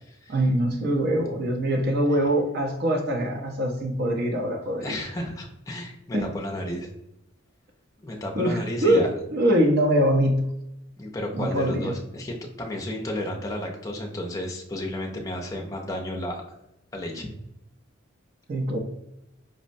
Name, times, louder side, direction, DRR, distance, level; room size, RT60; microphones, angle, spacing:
voice 1, 0.3-5.0 6.1-6.3 8.4-10.4 11.3-11.9 18.5-18.8, right 1 dB, 50° right, 3 dB, 0.6 m, -23 dB
voice 2, 4.8-6.9 8.0-9.1 11.0-16.4 16.9-17.3, left 1 dB, 15° left, 0 dB, 0.5 m, -32 dB
5.1 x 2.0 x 2.6 m, 0.84 s
head